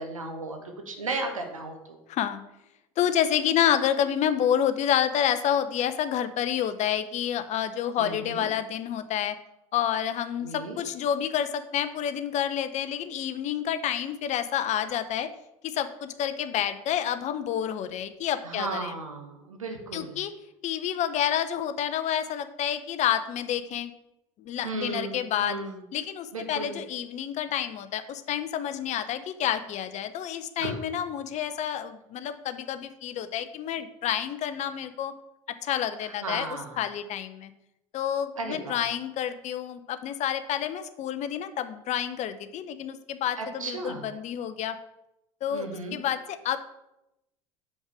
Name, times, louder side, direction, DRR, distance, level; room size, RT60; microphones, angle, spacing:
voice 1, 0.0-2.0 8.0-8.5 10.4-10.8 18.4-20.2 24.6-25.8 26.3-26.8 30.6-30.8 36.0-36.8 38.4-38.8 43.4-44.0 45.5-46.0, right 3 dB, 90° right, 3 dB, 1.1 m, -35 dB
voice 2, 2.1-2.4 3.0-9.3 9.7-15.3 15.6-18.9 19.9-20.3 20.6-23.9 24.4-25.6 25.9-35.1 35.5-37.5 37.9-44.8 45.4-46.6, left 10 dB, 45° left, 11 dB, 0.6 m, -29 dB
5.4 x 4.8 x 6.0 m, 0.88 s
hypercardioid pair, 70°, 17 cm